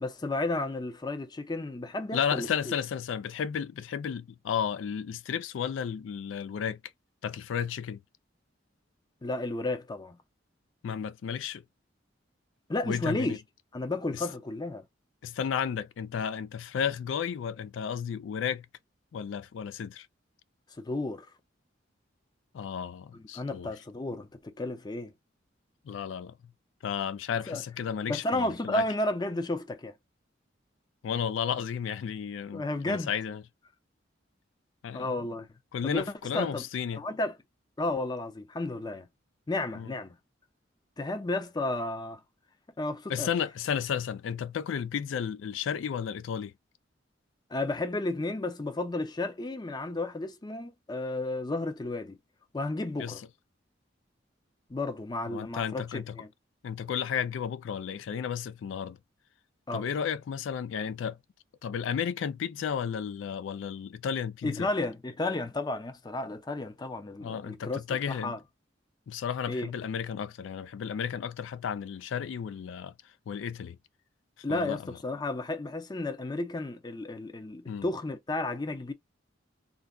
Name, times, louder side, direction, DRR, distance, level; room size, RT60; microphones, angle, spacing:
voice 1, 0.0-2.7 9.2-10.2 12.7-13.4 13.7-14.9 20.8-21.3 23.1-25.1 27.5-27.6 28.1-29.9 32.5-33.1 34.9-35.5 35.8-36.1 36.3-36.6 36.9-37.3 37.8-39.1 39.5-40.2 41.0-42.2 42.8-43.3 47.5-52.2 52.5-53.2 54.7-56.3 59.7-59.8 64.4-67.8 68.1-68.4 69.5-69.7 74.4-78.9, left 2 dB, 20° left, 0.5 m, -32 dB
voice 2, 2.1-6.8 7.2-8.0 10.8-11.6 12.9-13.4 14.1-14.3 15.2-18.7 19.1-20.1 22.5-23.7 25.9-26.3 26.8-28.9 31.0-33.4 34.8-35.2 35.7-37.0 39.7-39.9 43.1-46.5 53.0-53.2 55.3-56.2 56.6-59.0 59.7-61.2 61.6-64.7 67.2-68.4 69.1-73.8 74.5-74.8 77.7-77.9, left 7 dB, 80° left, 0.3 m, -33 dB
3.8 x 2.2 x 2.3 m
head